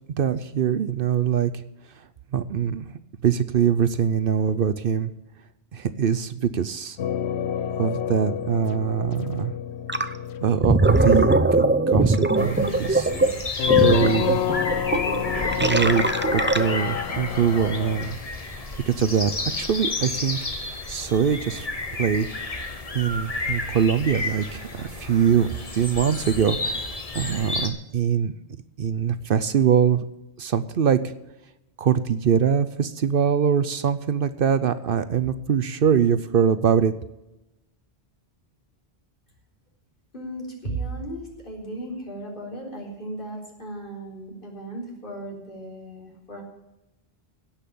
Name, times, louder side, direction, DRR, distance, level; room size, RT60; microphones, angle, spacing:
voice 1, 0.2-1.5 2.3-2.9 3.2-5.1 5.7-7.0 7.8-9.5 10.4-13.1 13.8-14.4 15.6-16.0 16.3-18.2 18.9-20.4 20.9-22.4 22.9-28.3 28.8-30.0 30.4-31.0 31.8-36.9, right 7 dB, 65° right, 13 dB, 0.8 m, -23 dB
sound 1, 7.0-18.1, left 10 dB, 90° left, 0.9 m, -28 dB
Gurgling, 9.9-10.1 10.5-17.0, right 2 dB, 15° right, 0.6 m, -21 dB
sound 2, 12.4-27.7, left 3 dB, 35° left, 1.3 m, -32 dB
voice 2, 40.1-46.4, right 2 dB, 55° left, -2 dB, 4.2 m, -35 dB
17.0 x 6.0 x 8.5 m, 0.94 s
omnidirectional pair, 1.1 m